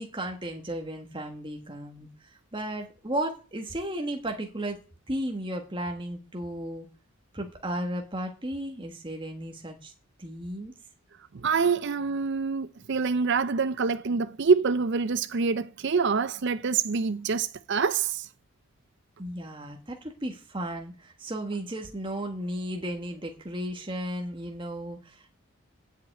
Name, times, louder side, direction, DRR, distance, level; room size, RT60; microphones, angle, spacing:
voice 1, 0.0-4.8 5.1-6.8 7.3-9.9 10.2-10.7 19.2-25.4, right 1 dB, 20° right, 1.6 m, -34 dB
voice 2, 11.3-18.3, right 5 dB, 55° right, 0.5 m, -26 dB
9.2 x 8.0 x 9.0 m
head